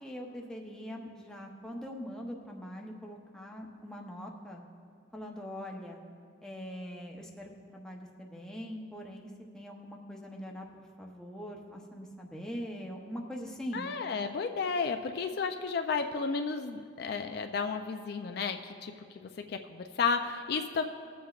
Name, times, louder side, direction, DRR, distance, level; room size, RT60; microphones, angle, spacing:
voice 1, 0.0-4.6 5.1-6.0 6.4-13.9, equal, 5° left, -1 dB, 0.6 m, -42 dB
voice 2, 13.7-18.9 19.2-20.8, left 5 dB, 50° left, 6 dB, 0.3 m, -32 dB
20.5 x 7.6 x 2.4 m, 2.3 s
head